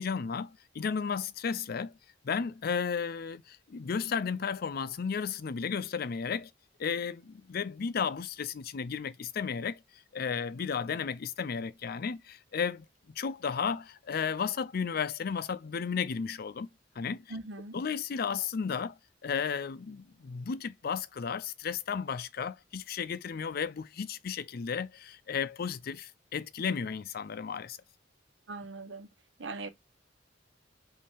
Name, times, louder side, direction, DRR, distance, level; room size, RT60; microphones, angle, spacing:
voice 1, 0.0-1.9 2.2-6.5 6.8-9.8 10.1-16.7 17.0-17.2 17.7-27.8, left 6 dB, 55° left, 0.5 m, -34 dB
voice 2, 17.3-17.8 28.5-29.1 29.4-29.7, right 3 dB, 85° right, 1.0 m, -40 dB
5.3 x 2.7 x 3.5 m
head